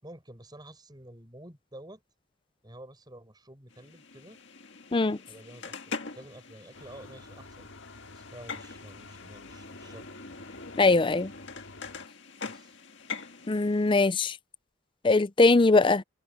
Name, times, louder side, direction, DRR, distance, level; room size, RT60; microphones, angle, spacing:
voice 1, 0.0-2.0 2.6-4.4 5.3-7.7 8.1-10.1 12.4-12.8, right 1 dB, 20° right, 5.7 m, -49 dB
sound 1, 3.7-13.9, left 4 dB, 60° left, 2.0 m, -43 dB
sound 2, 6.7-12.1, left 2 dB, 80° left, 3.7 m, -49 dB
voice 2, 10.8-11.3 13.5-14.4 15.0-16.0, left 3 dB, 25° left, 0.5 m, -21 dB
head